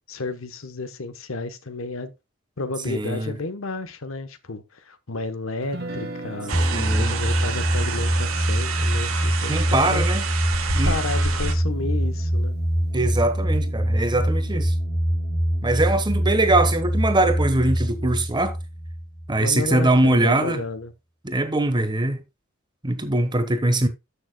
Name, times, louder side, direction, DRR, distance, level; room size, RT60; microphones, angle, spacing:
voice 1, 0.1-2.1 2.6-10.1 10.9-12.5 19.4-20.9, left 3 dB, 70° left, 1.0 m, -32 dB
voice 2, 2.9-3.4 6.7-7.2 9.5-10.3 10.7-11.0 12.9-14.7 15.6-18.6 19.3-20.6 21.2-22.2 22.8-23.9, right 2 dB, 20° right, 1.1 m, -22 dB
Guitar, 5.6-11.7, right 2 dB, 50° right, 1.3 m, -40 dB
sound 1, 6.5-19.7, equal, 15° left, 3.4 m, -24 dB
sound 2, 6.5-11.5, right 5 dB, 75° right, 1.3 m, -29 dB
13.0 x 6.5 x 2.2 m
head